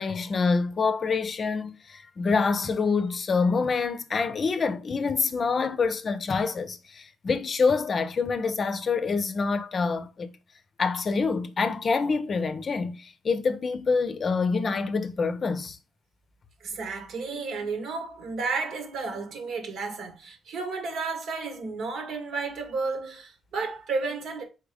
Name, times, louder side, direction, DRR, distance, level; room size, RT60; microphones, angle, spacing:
voice 1, 0.0-10.3 10.8-15.8, left 4 dB, 45° left, 0.6 m, -26 dB
voice 2, 16.6-24.4, right 4 dB, 70° right, 1.3 m, -32 dB
4.4 x 3.6 x 3.3 m
cardioid pair, 90°, 0 cm